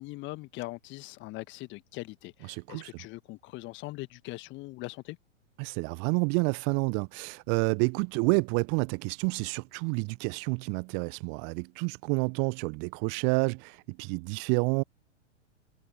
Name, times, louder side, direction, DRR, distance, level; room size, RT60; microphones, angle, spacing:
voice 1, 0.0-5.2, left 21 dB, 30° left, 1.6 m, -41 dB
voice 2, 2.4-2.9 5.6-14.8, right 38 dB, 30° right, 0.7 m, -29 dB
figure-of-eight pair, 100°, 37 cm